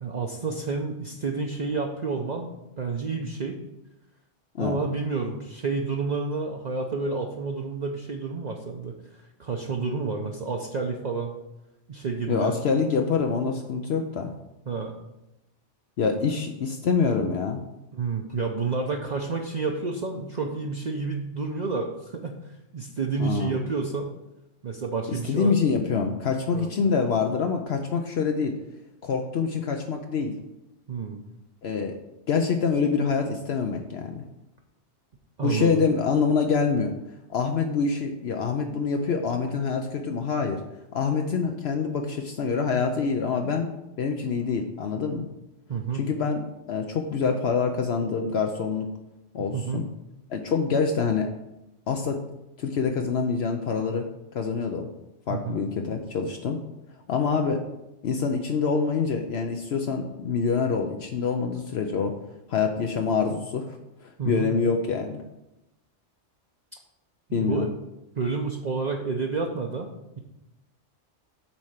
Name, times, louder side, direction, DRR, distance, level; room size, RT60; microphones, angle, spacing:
voice 1, 0.0-2.5 2.8-3.6 4.6-11.3 11.9-12.5 14.7-14.9 17.9-22.4 22.7-24.1 24.6-25.5 26.5-26.7 30.9-31.2 35.4-35.8 45.7-46.1 49.4-49.8 55.3-55.6 64.2-64.5 67.4-67.7 68.1-69.9, right 4 dB, 45° right, 1 dB, 0.7 m, -29 dB
voice 2, 12.3-14.3 16.0-17.6 23.2-23.6 25.1-28.5 29.0-30.3 31.6-31.9 32.3-34.2 35.4-36.9 37.3-40.6 40.9-43.7 44.0-45.3 45.9-48.9 49.3-49.9 50.3-51.3 51.9-52.2 52.6-54.1 54.3-54.9 55.3-56.6 57.1-57.6 58.0-62.2 62.5-65.2 67.3-67.7, left 5 dB, 65° left, 4 dB, 0.9 m, -26 dB
7.3 x 4.3 x 6.5 m, 0.92 s
omnidirectional pair, 1.2 m